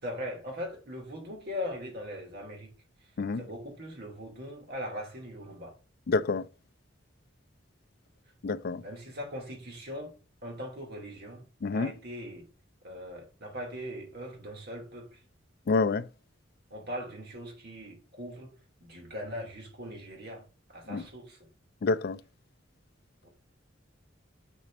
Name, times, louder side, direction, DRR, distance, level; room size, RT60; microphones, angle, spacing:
voice 1, 0.0-2.7 3.4-5.8 8.8-11.5 11.7-12.5 12.8-15.2 16.7-18.5 18.8-20.5 20.7-21.5 23.2-23.3, equal, 55° right, 2.6 m, -40 dB
voice 2, 6.1-6.4 8.4-8.8 11.6-11.9 15.7-16.1 20.9-21.0 21.8-22.2, left 4 dB, 50° left, 0.4 m, -27 dB
6.2 x 4.1 x 5.2 m
head